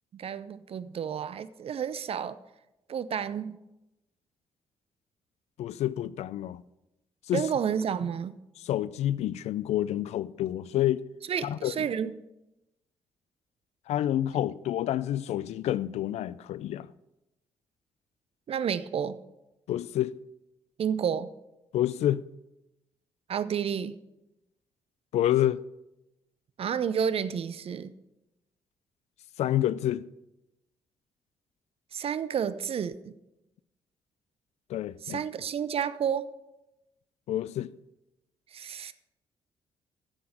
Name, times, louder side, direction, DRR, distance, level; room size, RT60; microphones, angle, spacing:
voice 1, 0.1-2.4 2.9-3.6 7.3-8.3 11.3-12.2 18.5-19.2 20.8-21.3 23.3-24.0 26.6-27.9 31.9-33.1 35.0-36.3 38.5-38.9, right 8 dB, 55° right, 0.6 m, -30 dB
voice 2, 5.6-6.6 7.3-7.5 8.6-11.0 11.4-11.7 13.9-16.9 19.7-20.2 21.7-22.2 25.1-25.6 29.4-30.1 34.7-35.2 37.3-37.7, left 12 dB, 70° left, 0.4 m, -28 dB
9.7 x 7.9 x 6.4 m
hypercardioid pair, 45°, 12 cm